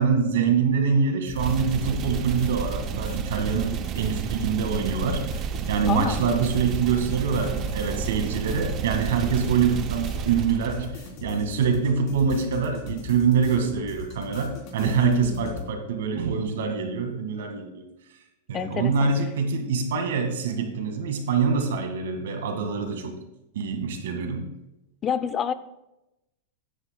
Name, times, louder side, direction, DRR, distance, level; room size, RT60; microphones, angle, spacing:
voice 1, 0.0-5.2 5.7-10.9 11.2-17.9 18.5-23.1 23.5-24.5, right 6 dB, 80° right, 5 dB, 1.9 m, -25 dB
sound 1, 1.2-15.7, left 5 dB, 40° left, 3.6 m, -39 dB
sound 2, 1.4-11.2, right 9 dB, 30° right, 0.5 m, -31 dB
voice 2, 5.9-6.3 14.8-15.7 18.5-19.1 25.0-25.5, left 8 dB, 25° left, 13 dB, 0.6 m, -29 dB
15.5 x 9.7 x 2.3 m, 0.92 s
supercardioid pair, 145°, 0 cm